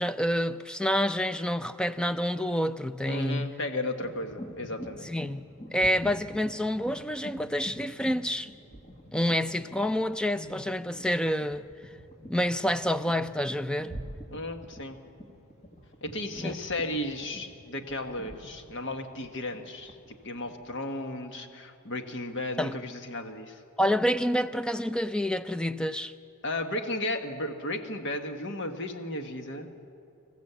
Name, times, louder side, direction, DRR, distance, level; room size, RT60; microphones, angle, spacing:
voice 1, 0.0-3.6 5.0-8.5 9.1-11.6 12.3-14.0 16.4-16.5 22.6-22.8 23.8-26.1, equal, 5° left, 0.4 m, -28 dB
voice 2, 3.1-5.1 10.4-10.6 14.3-15.0 16.0-19.9 20.2-23.6 26.4-29.7, left 1 dB, 55° left, 1.5 m, -34 dB
sound 1, 4.0-20.7, equal, 30° left, 1.9 m, -46 dB
25.5 x 14.5 x 8.2 m
head